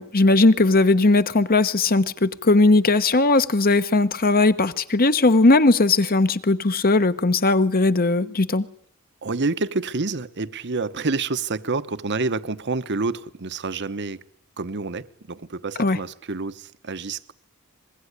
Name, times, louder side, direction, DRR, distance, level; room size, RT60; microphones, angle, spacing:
voice 1, 0.0-8.7 15.8-16.0, left 2 dB, 45° left, 1.1 m, -18 dB
voice 2, 9.2-14.2 14.6-17.3, right 3 dB, 55° right, 1.0 m, -28 dB
24.0 x 21.5 x 9.8 m
head